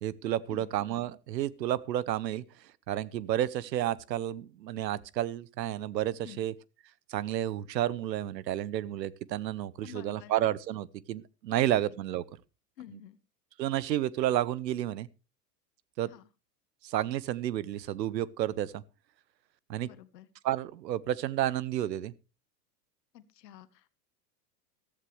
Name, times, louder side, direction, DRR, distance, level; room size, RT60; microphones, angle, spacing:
voice 1, 0.0-2.4 2.9-6.5 7.1-12.2 13.6-15.1 16.0-16.1 16.8-18.8 19.7-19.9 20.4-22.1, right 12 dB, 85° right, 0.9 m, -31 dB
voice 2, 9.8-10.3 12.8-13.2 16.1-16.2 19.8-20.3 23.1-23.9, left 12 dB, 75° left, 1.5 m, -49 dB
14.5 x 13.5 x 3.2 m
hypercardioid pair, 105°, 49 cm